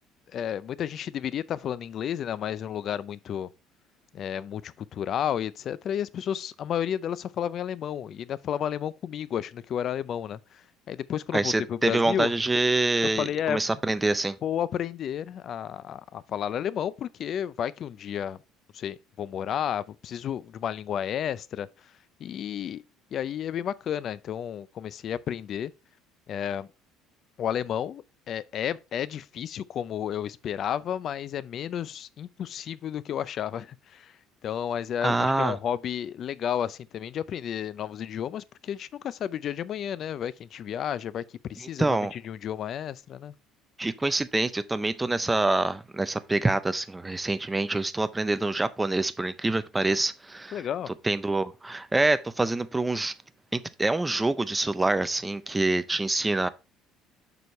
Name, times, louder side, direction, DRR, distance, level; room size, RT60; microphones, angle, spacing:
voice 1, 0.3-3.5 4.1-12.3 13.2-13.6 14.4-18.4 18.7-21.7 22.2-22.8 23.1-25.7 26.3-26.7 27.4-34.1 34.4-43.3 50.5-50.9, left 9 dB, 45° left, 0.4 m, -32 dB
voice 2, 11.3-14.4 35.0-35.6 41.6-42.1 43.8-50.7 51.0-53.1 53.5-56.5, right 2 dB, 10° right, 0.5 m, -26 dB
6.9 x 6.3 x 3.1 m
cardioid pair, 140°, 0 cm